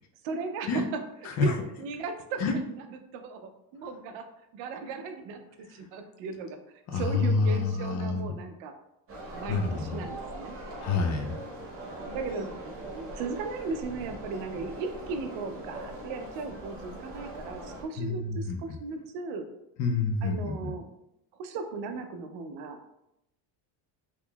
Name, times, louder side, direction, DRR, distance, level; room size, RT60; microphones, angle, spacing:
voice 1, 0.2-1.0 1.4-1.5 1.8-2.9 3.1-4.3 4.5-6.6 6.9-8.7 9.3-10.6 11.9-19.5 20.2-20.9 21.4-22.8, right 4 dB, 75° right, 7 dB, 0.6 m, -37 dB
voice 2, 1.2-1.6 2.4-2.5 6.9-8.3 9.5-10.0 10.8-11.4 18.0-18.8 19.8-20.7, left 4 dB, 40° left, 4 dB, 0.4 m, -28 dB
sound 1, 9.1-17.8, right 1 dB, 30° right, 0.7 m, -41 dB
3.6 x 2.9 x 2.2 m, 0.84 s
cardioid pair, 150°, 46 cm